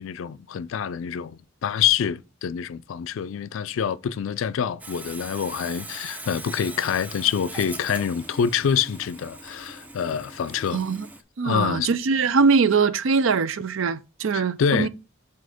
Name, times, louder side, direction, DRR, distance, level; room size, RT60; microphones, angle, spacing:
voice 1, 0.0-10.8 11.4-11.9 14.3-14.9, left 7 dB, 70° left, 0.4 m, -26 dB
Sawing, 4.8-11.2, right 2 dB, 10° right, 0.4 m, -40 dB
voice 2, 10.7-11.1 11.4-14.9, right 5 dB, 70° right, 0.5 m, -22 dB
7.6 x 2.9 x 4.9 m
head